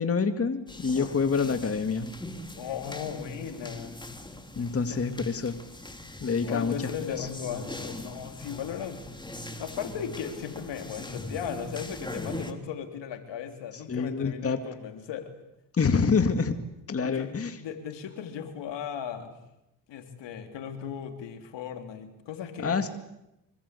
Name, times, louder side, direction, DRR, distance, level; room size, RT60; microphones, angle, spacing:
voice 1, 0.0-2.1 4.6-5.6 6.2-6.7 7.2-7.3 13.9-14.6 15.7-16.6 16.9-17.6 22.6-22.9, left 5 dB, 30° left, 7 dB, 2.2 m, -26 dB
sound 1, 0.7-12.5, left 1 dB, 10° left, 3.2 m, -41 dB
voice 2, 0.9-1.3 2.6-4.0 4.9-5.2 6.5-9.0 9.6-15.3 17.0-19.3 19.9-22.8, left 8 dB, 75° left, 6 dB, 3.6 m, -37 dB
26.0 x 24.0 x 8.4 m, 0.87 s
cardioid pair, 90°, 44 cm